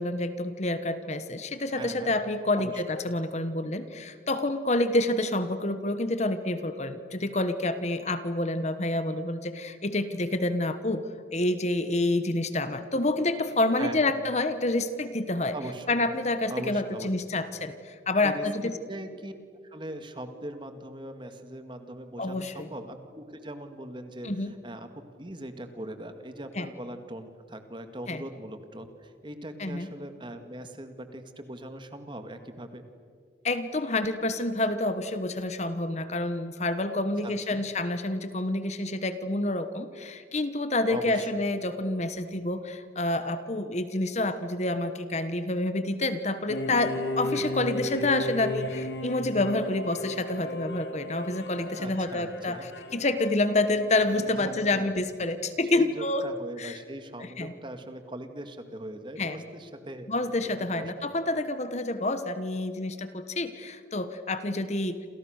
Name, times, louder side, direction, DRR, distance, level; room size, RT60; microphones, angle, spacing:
voice 1, 0.0-15.5 15.9-18.7 22.2-22.7 24.2-24.5 26.5-26.7 28.1-28.2 29.6-29.9 33.4-52.6 52.9-56.2 56.6-56.8 57.2-57.5 59.2-59.4 60.1-65.1, left 2 dB, 40° left, 10 dB, 1.2 m, -28 dB
voice 2, 1.8-2.1 2.6-2.8 13.8-14.1 15.5-15.9 16.5-17.1 18.2-18.5 18.9-19.3 19.7-24.9 25.2-32.8 37.2-37.6 40.9-41.3 51.6-52.7 54.3-54.9 55.7-60.1 60.7-61.1, right 1 dB, 25° right, 8 dB, 1.9 m, -40 dB
sound 1, 46.5-54.9, left 1 dB, 70° left, 2.2 m, -35 dB
28.5 x 27.5 x 6.5 m, 2.2 s
head